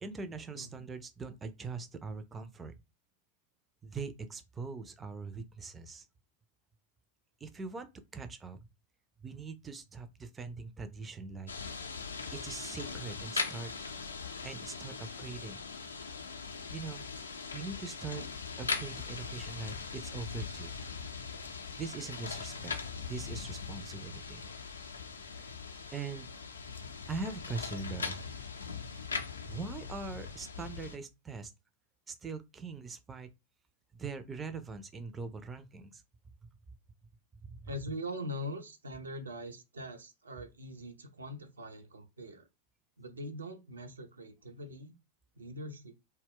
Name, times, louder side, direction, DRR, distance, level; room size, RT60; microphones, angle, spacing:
voice 1, 0.0-2.7 3.8-6.0 7.4-8.6 9.2-11.5 12.3-13.7 14.4-15.6 16.7-17.1 17.5-18.2 18.6-20.7 21.8-22.7 23.0-24.5 25.9-26.3 27.1-28.2 29.4-31.5 32.1-33.3 33.9-36.0 37.4-37.7, right 4 dB, 20° right, 0.3 m, -42 dB
sound 1, 11.5-31.0, left 5 dB, 80° left, 0.4 m, -40 dB
voice 2, 37.6-42.5 43.0-44.9 45.4-45.9, equal, 80° right, 0.5 m, -42 dB
2.1 x 2.1 x 3.5 m
figure-of-eight pair, 90°, 0 cm